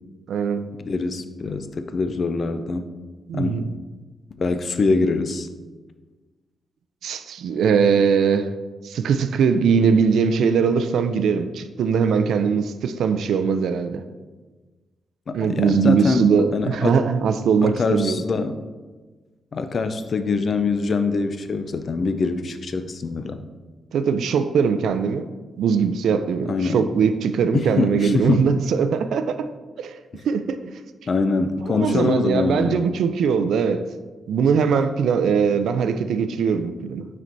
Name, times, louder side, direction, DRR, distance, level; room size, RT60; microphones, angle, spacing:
voice 1, 0.3-0.7 3.3-3.6 7.0-8.5 8.8-14.0 15.3-18.2 23.9-25.3 25.6-29.5 29.8-30.0 30.2-30.7 31.7-33.9 34.3-37.1, right 6 dB, 90° right, 10 dB, 0.3 m, -21 dB
voice 2, 0.8-2.9 3.3-3.7 4.4-5.5 15.3-17.0 17.6-18.6 19.5-23.4 26.4-26.8 27.5-28.5 30.1-30.2 31.1-32.8, left 4 dB, 45° left, 9 dB, 0.4 m, -24 dB
9.3 x 4.3 x 2.6 m, 1.3 s
cardioid pair, 120°, 0 cm